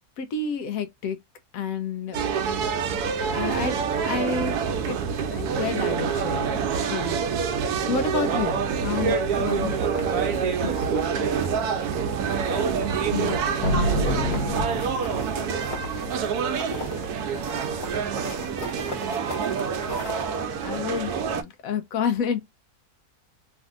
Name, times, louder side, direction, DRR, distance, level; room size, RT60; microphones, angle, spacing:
voice 1, 0.2-1.2 1.5-2.3 3.3-3.8 4.0-4.6 4.9-5.0 5.3-6.5 6.9-7.2 7.9-9.1 9.4-9.8 13.1-13.4 20.6-22.4, left 6 dB, 70° left, 1.0 m, -29 dB
sound 1, 2.1-21.4, right 6 dB, 90° right, 1.1 m, -27 dB
voice 2, 8.9-11.5 11.8-12.0 12.5-13.7 14.0-14.2 14.5-14.6 14.9-15.9 16.4-18.7, right 5 dB, 65° right, 1.0 m, -33 dB
sound 2, 9.3-11.1 11.4-12.0 12.3-20.3, left 1 dB, 25° left, 1.0 m, -39 dB
sound 3, 13.6-15.4, equal, 90° left, 1.6 m, -26 dB
3.2 x 2.6 x 2.4 m
omnidirectional pair, 1.6 m